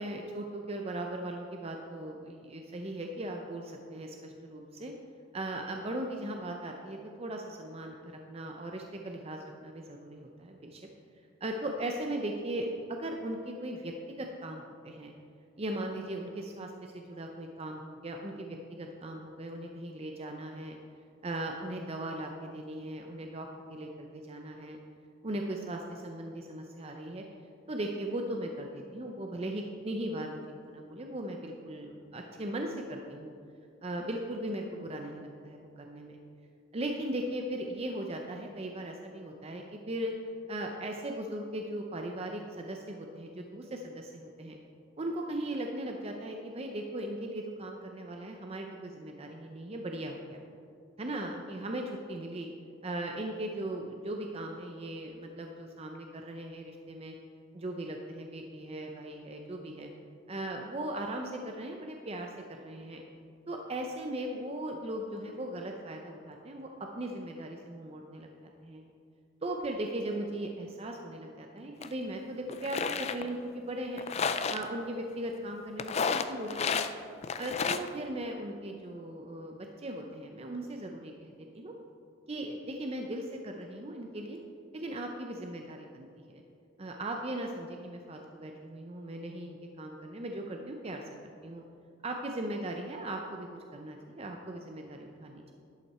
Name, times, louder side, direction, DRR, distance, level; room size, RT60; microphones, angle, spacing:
voice 1, 0.0-4.9 5.3-10.9 11.4-15.1 15.6-20.8 21.2-24.8 25.2-27.2 27.7-33.3 33.8-36.2 36.7-40.1 40.5-44.6 45.0-50.4 51.0-52.5 52.8-57.1 57.5-59.9 60.3-63.0 63.5-68.9 69.4-74.1 74.5-76.8 77.4-81.7 82.3-84.4 84.7-86.4 86.8-91.1 91.4-91.6 92.0-95.5, right 1 dB, 30° right, 2 dB, 0.6 m, -38 dB
sound 1, 71.8-71.9 72.5-73.2 74.0-74.6 75.8-76.9 77.2-77.9, left 6 dB, 35° left, 0.4 m, -31 dB
11.5 x 8.4 x 4.3 m, 2.4 s
head